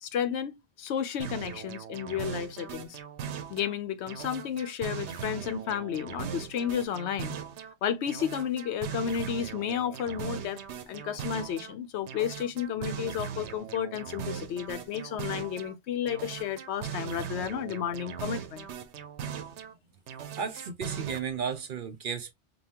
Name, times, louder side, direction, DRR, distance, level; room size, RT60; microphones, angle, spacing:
voice 1, 0.0-3.0 3.5-7.4 7.8-10.6 10.9-18.7, left 9 dB, 80° left, 0.9 m, -32 dB
sound 1, 1.2-3.7 4.1-7.7 8.1-11.7 12.1-15.7 16.1-19.7 20.1-21.2, right 8 dB, 80° right, 0.9 m, -39 dB
voice 2, 20.4-22.3, right 6 dB, 55° right, 0.7 m, -34 dB
5.3 x 2.3 x 2.8 m
omnidirectional pair, 1.2 m